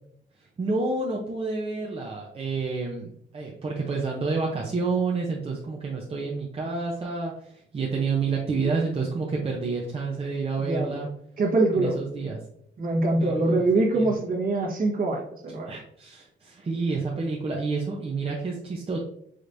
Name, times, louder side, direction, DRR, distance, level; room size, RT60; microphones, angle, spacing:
voice 1, 0.6-11.1 11.7-12.4 13.2-13.7 13.9-14.1 15.7-19.0, right 4 dB, 30° right, -2 dB, 0.8 m, -29 dB
voice 2, 10.6-11.0 11.4-12.0 12.8-15.7, right 2 dB, 45° right, -1 dB, 1.3 m, -24 dB
5.0 x 3.1 x 2.6 m, 0.72 s
cardioid pair, 90°, 20 cm